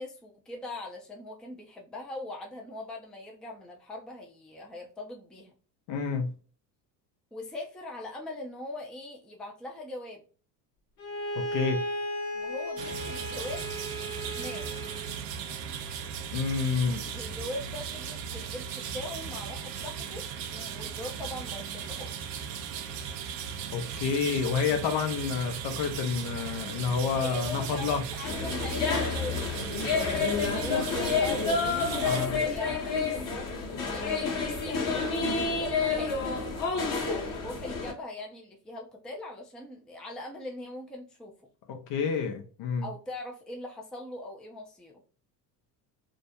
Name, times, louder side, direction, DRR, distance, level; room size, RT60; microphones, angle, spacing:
voice 1, 0.0-5.5 7.3-10.2 12.3-13.7 14.3-14.6 17.1-20.2 20.5-22.3 27.1-35.3 35.5-36.2 37.0-41.3 42.8-45.0, left 2 dB, ahead, 0.4 m, -41 dB
voice 2, 5.9-6.3 11.4-11.8 16.3-17.0 23.7-28.0 32.0-32.4 41.7-42.9, left 5 dB, 55° left, 0.7 m, -29 dB
Bowed string instrument, 11.0-15.2, equal, 75° left, 1.1 m, -35 dB
sound 1, 12.8-32.3, right 7 dB, 60° right, 0.5 m, -37 dB
sound 2, 28.2-37.9, left 4 dB, 40° left, 1.0 m, -29 dB
2.4 x 2.0 x 2.8 m
hypercardioid pair, 70°, 50 cm